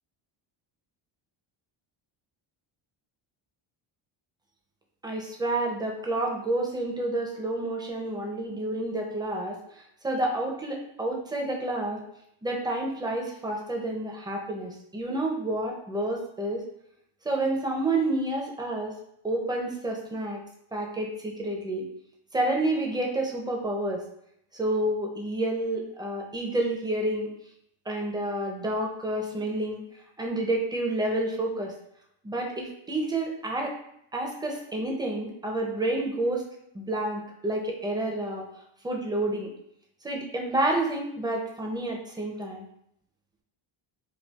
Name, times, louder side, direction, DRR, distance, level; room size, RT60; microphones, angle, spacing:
voice 1, 5.0-12.0 12.4-16.6 17.2-18.9 19.2-20.4 20.7-21.8 22.3-24.0 24.5-27.3 27.9-29.8 30.2-31.7 32.2-33.7 34.1-36.4 36.7-38.4 38.8-39.5 40.0-42.6, right 1 dB, 10° right, 0 dB, 0.4 m, -29 dB
4.3 x 2.3 x 2.3 m, 0.74 s
cardioid pair, 125°, 50 cm